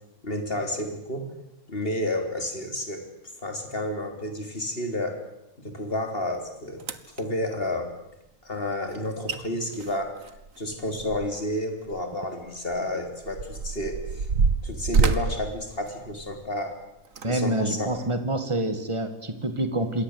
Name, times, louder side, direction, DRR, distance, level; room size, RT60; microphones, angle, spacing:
voice 1, 0.2-1.3 1.7-3.0 3.4-5.2 5.6-6.8 7.2-7.9 8.4-10.1 10.6-14.3 14.6-16.8 17.2-17.9, left 1 dB, 45° left, 5 dB, 4.0 m, -30 dB
sound 1, 6.3-6.4 6.8-7.2 9.0-9.1 9.3-9.4 9.7-11.5 11.9-12.0 12.7-16.5 17.1-17.3 17.9-18.0, right 5 dB, 75° right, 1.8 m, -27 dB
voice 2, 17.2-20.0, right 1 dB, 20° right, 8 dB, 2.3 m, -27 dB
27.5 x 22.0 x 8.2 m, 0.88 s
omnidirectional pair, 1.4 m